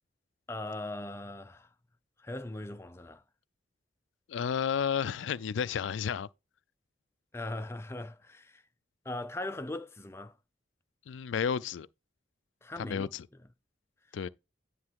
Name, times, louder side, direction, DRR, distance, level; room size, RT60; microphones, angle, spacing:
voice 1, 0.5-1.7 2.2-3.2 7.3-8.6 9.0-10.4 12.6-13.1 14.1-14.2, left 2 dB, 15° left, 0.5 m, -39 dB
voice 2, 4.3-6.3 11.1-11.9 12.8-13.2 14.1-14.3, left 7 dB, 85° left, 0.4 m, -32 dB
9.6 x 3.2 x 4.6 m
head